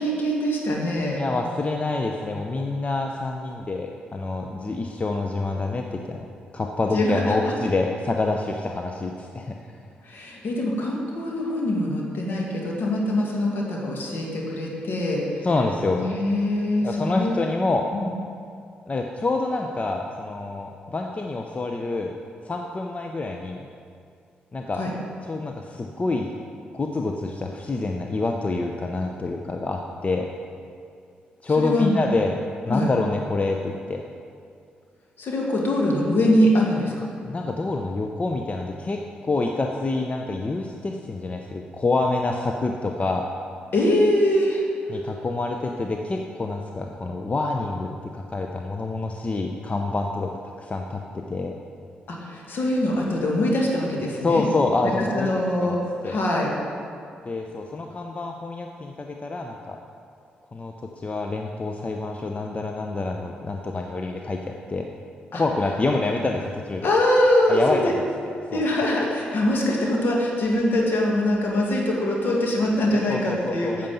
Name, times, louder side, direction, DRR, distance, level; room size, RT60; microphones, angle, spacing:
voice 1, 0.0-1.2 6.9-7.6 10.0-15.5 15.9-17.4 17.9-18.1 24.8-24.9 31.6-31.9 32.7-32.9 35.2-37.1 43.7-44.6 52.1-54.4 55.0-55.8 56.0-56.5 65.3-65.4 66.8-67.9 68.5-73.9, left 1 dB, 65° left, -2 dB, 2.0 m, -23 dB
voice 2, 1.1-6.2 6.5-9.5 15.4-16.0 16.8-17.9 18.9-22.1 22.5-23.7 24.5-24.8 25.2-26.3 26.7-30.3 31.4-32.3 32.7-34.0 37.2-43.3 44.9-50.3 50.6-51.5 54.2-55.3 55.6-55.8 56.0-56.2 57.2-59.8 60.5-64.4 64.7-64.9 65.3-66.9 67.5-68.0 68.5-68.6 73.1-73.9, left 3 dB, 35° left, 2 dB, 0.7 m, -27 dB
8.9 x 6.8 x 5.5 m, 2.3 s
supercardioid pair, 50°, 4 cm